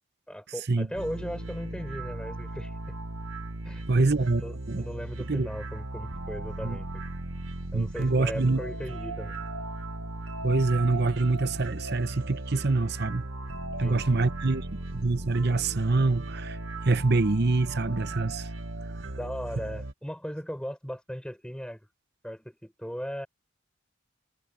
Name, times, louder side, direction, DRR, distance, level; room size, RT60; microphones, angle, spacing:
voice 1, 0.3-3.0 3.6-4.1 4.3-7.0 7.7-9.4 13.8-14.0 19.1-21.8 22.2-23.3, equal, 5° left, 5.2 m, -38 dB
sound 1, 0.9-19.9, right 2 dB, 85° right, 1.5 m, -37 dB
voice 2, 3.9-4.4 4.7-4.8 5.3-5.5 6.6-6.8 7.7-8.6 10.4-13.3 13.8-14.7 14.9-16.6 16.8-18.5, right 3 dB, 55° right, 0.9 m, -25 dB
head